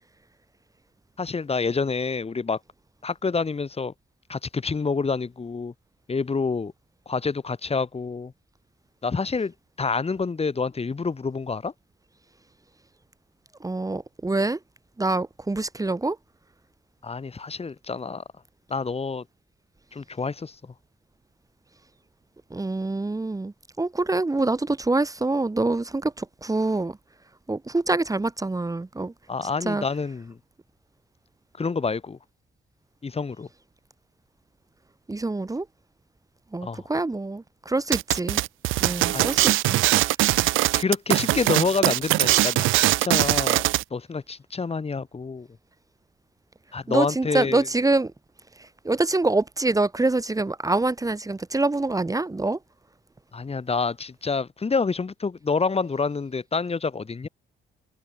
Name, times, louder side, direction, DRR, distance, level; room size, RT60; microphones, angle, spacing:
voice 1, 1.2-2.6 3.0-3.9 4.3-5.7 6.1-6.7 7.0-8.3 9.0-11.7 17.0-18.2 18.7-19.2 19.9-20.6 29.3-30.4 31.6-32.2 33.0-33.5 36.6-36.9 39.1-39.3 40.7-45.5 46.7-47.7 53.3-57.3, left 4 dB, 30° left, 3.4 m, -28 dB
voice 2, 13.6-14.6 15.0-16.2 22.5-27.0 27.5-29.1 29.4-29.8 35.1-35.7 36.5-38.4 38.8-39.8 46.9-48.1 48.6-52.6, right 2 dB, 15° right, 2.3 m, -25 dB
sound 1, 37.9-43.8, right 17 dB, 85° right, 0.7 m, -21 dB
cardioid pair, 90°, 20 cm